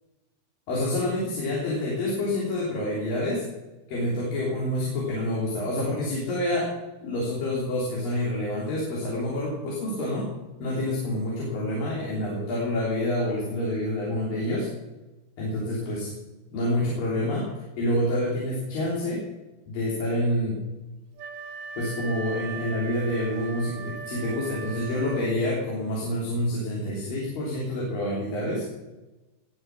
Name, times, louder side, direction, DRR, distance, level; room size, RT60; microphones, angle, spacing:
voice 1, 0.7-3.5 3.9-10.3 10.6-14.7 15.4-16.1 16.5-17.5 17.8-19.3 19.7-20.6 21.8-28.7, left 1 dB, 60° left, -5 dB, 5.0 m, -27 dB
Wind instrument woodwind instrument, 21.2-25.6, right 5 dB, 75° right, 1.6 m, -39 dB
20.0 x 8.5 x 6.2 m, 1.1 s
omnidirectional pair, 4.7 m